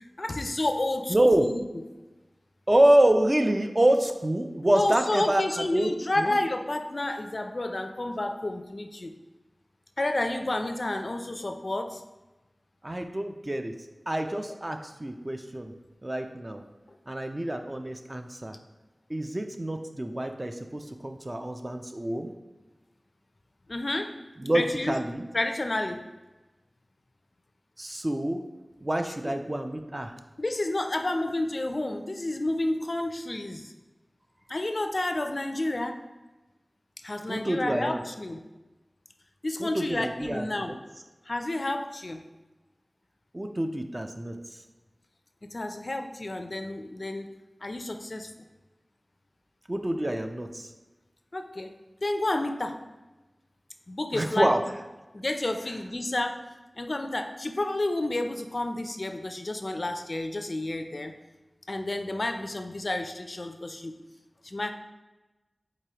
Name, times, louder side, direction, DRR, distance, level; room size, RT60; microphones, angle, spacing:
voice 1, 0.0-1.6 4.6-9.1 10.0-12.0 14.5-14.6 16.9-17.0 23.7-24.2 24.5-25.0 25.3-26.0 29.2-29.3 30.4-33.7 34.5-36.0 37.0-38.4 39.4-40.8 41.3-42.2 45.5-47.3 47.6-48.3 51.3-51.7 52.0-52.8 53.9-54.6 55.1-56.4 56.8-61.1 61.7-64.0 64.4-64.7, left 2 dB, 55° left, 6 dB, 0.3 m, -30 dB
voice 2, 1.1-1.5 2.7-5.9 6.2-6.4 12.8-13.7 14.1-15.7 16.0-16.6 17.1-18.5 19.1-22.3 24.4-25.2 27.8-28.4 28.8-30.1 37.3-38.0 39.6-40.5 43.3-44.4 49.7-50.7 54.1-54.6, right 1 dB, 30° right, 5 dB, 0.4 m, -26 dB
4.7 x 3.8 x 2.8 m, 1.1 s
wide cardioid pair, 55°, 0 cm